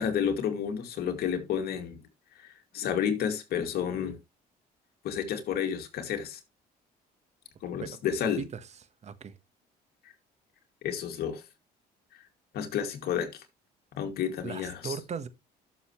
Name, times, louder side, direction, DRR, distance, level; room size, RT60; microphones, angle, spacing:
voice 1, 0.0-2.0 2.4-4.2 5.0-6.4 7.6-8.4 10.8-11.4 12.1-12.2 12.5-13.4 14.0-15.0, left 8 dB, 65° left, 2.4 m, -31 dB
voice 2, 9.0-9.3 14.4-15.3, right 6 dB, 40° right, 1.4 m, -37 dB
12.0 x 6.8 x 3.2 m
cardioid pair, 110°, 17 cm